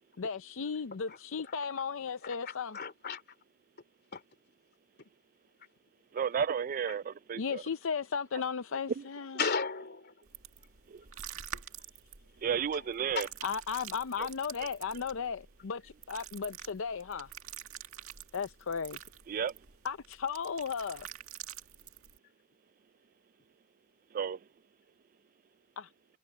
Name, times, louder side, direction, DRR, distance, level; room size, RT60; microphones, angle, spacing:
voice 1, 0.2-2.8 7.4-9.4 13.4-17.3 18.3-19.0 19.8-21.1 25.8-25.9, left 6 dB, 70° left, 0.6 m, -35 dB
voice 2, 1.1-1.6 2.2-3.2 4.1-4.2 6.9-7.0 7.5-7.6 8.7-8.8 9.4-10.2 12.7-12.9 13.1-13.3, left 5 dB, 50° left, 2.8 m, -36 dB
voice 3, 6.1-7.6 9.0-9.1 10.9-11.0 12.4-13.3 19.3-19.5 24.1-24.4, right 7 dB, 40° right, 0.3 m, -32 dB
sound 1, 10.3-22.2, right 9 dB, 90° right, 2.0 m, -48 dB
head